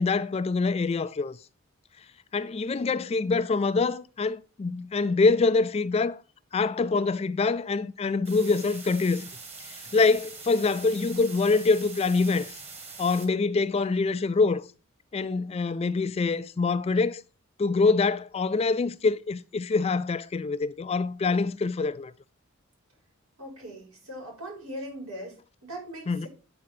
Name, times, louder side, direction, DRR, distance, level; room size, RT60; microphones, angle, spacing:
voice 1, 0.0-1.4 2.3-6.2 6.5-9.2 9.7-12.6 13.0-14.6 15.1-17.2 17.6-22.1 26.1-26.3, left 4 dB, 30° left, 0.3 m, -25 dB
sound 1, 8.2-13.2, right 4 dB, 30° right, 2.0 m, -43 dB
voice 2, 23.4-26.3, equal, 80° right, 4.9 m, -40 dB
8.9 x 4.3 x 5.8 m
head